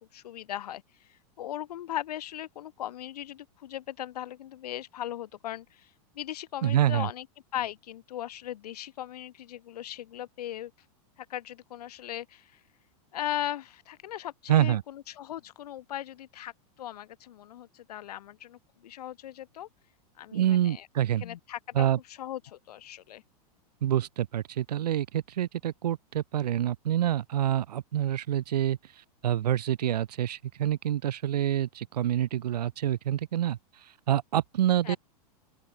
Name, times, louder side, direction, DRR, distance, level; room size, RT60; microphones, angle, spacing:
voice 1, 0.1-7.3 7.5-10.7 11.2-12.6 13.1-16.5 16.8-19.7 20.2-20.9 21.2-23.2 34.8-35.0, left 12 dB, 75° left, 3.5 m, -38 dB
voice 2, 6.6-7.1 14.5-14.8 20.3-21.2 21.7-22.0 23.8-28.8 29.2-33.6 34.1-35.0, right 11 dB, 90° right, 3.7 m, -27 dB
open air
supercardioid pair, 165°, 20 cm